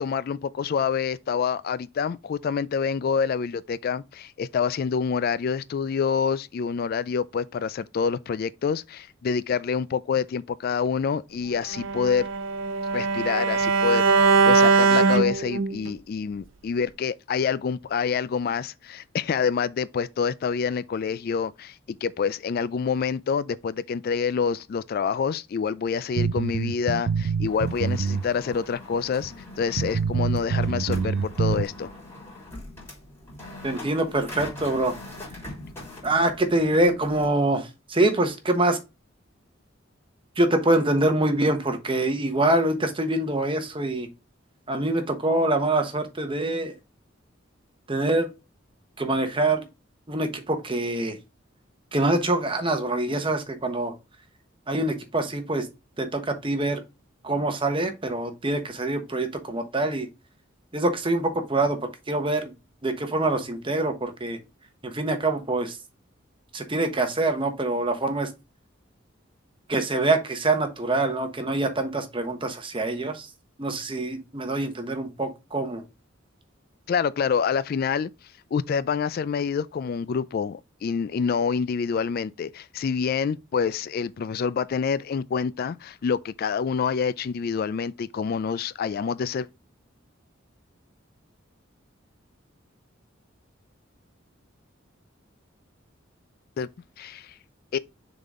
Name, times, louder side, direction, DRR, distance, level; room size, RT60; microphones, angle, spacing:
voice 1, 0.0-12.3 12.9-31.9 76.9-78.1 78.5-89.5 96.6-96.7 97.0-97.3 97.7-97.8, left 6 dB, 50° left, 0.3 m, -27 dB
Bowed string instrument, 11.7-15.9, right 4 dB, 90° right, 0.8 m, -21 dB
sound 1, 26.2-28.2 28.5-28.6 29.2-29.3 29.8-31.6, right 6 dB, 60° right, 0.3 m, -25 dB
sound 2, 27.4-37.3, left 1 dB, 15° left, 3.6 m, -42 dB
voice 2, 33.6-35.0 36.0-38.8 40.4-44.1 44.7-46.7 47.9-48.3 49.0-49.7 50.1-51.2 51.9-53.9 54.7-55.7 56.0-56.8 57.2-60.1 60.7-61.8 62.1-62.5 62.8-64.4 64.8-65.8 66.5-68.3 69.7-73.3 73.6-75.8, right 2 dB, 25° right, 1.1 m, -25 dB
6.6 x 4.1 x 3.6 m
head